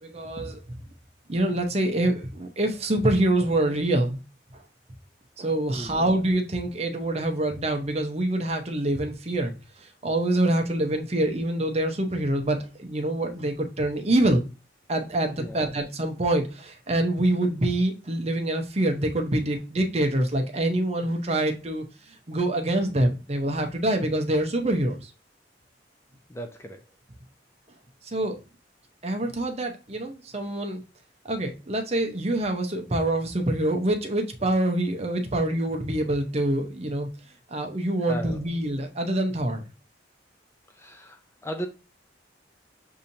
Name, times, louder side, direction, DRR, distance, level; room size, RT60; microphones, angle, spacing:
voice 1, 0.0-0.6 1.3-4.2 5.4-9.5 9.8-14.4 14.9-21.8 22.3-25.1 28.0-28.4 29.0-30.8 31.3-37.1 37.5-39.6, right 1 dB, 35° right, 0.8 m, -25 dB
voice 2, 5.7-6.0 15.4-15.6 26.3-26.8 38.1-38.4 40.7-41.7, right 1 dB, 15° left, 0.4 m, -36 dB
6.8 x 2.8 x 2.6 m
head